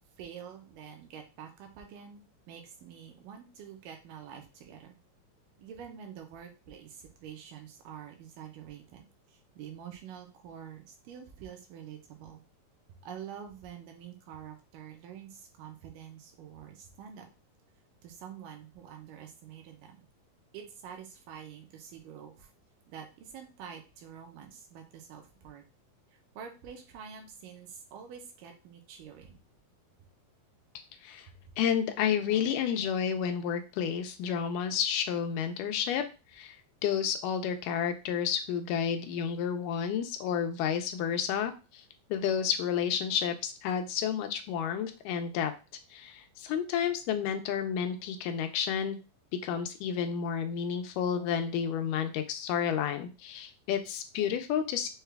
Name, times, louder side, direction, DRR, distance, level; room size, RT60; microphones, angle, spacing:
voice 1, 0.2-5.0 5.6-12.4 13.0-17.3 18.0-20.1 20.5-22.5 22.9-25.6 26.4-29.4 31.3-31.4, right 8 dB, 85° right, 4 dB, 2.5 m, -47 dB
voice 2, 31.6-36.0 36.3-36.6 36.8-41.8 42.1-45.5 45.9-49.0 49.4-54.9, left 8 dB, 85° left, 7 dB, 2.2 m, -31 dB
6.4 x 2.3 x 3.3 m, 0.30 s
omnidirectional pair, 3.8 m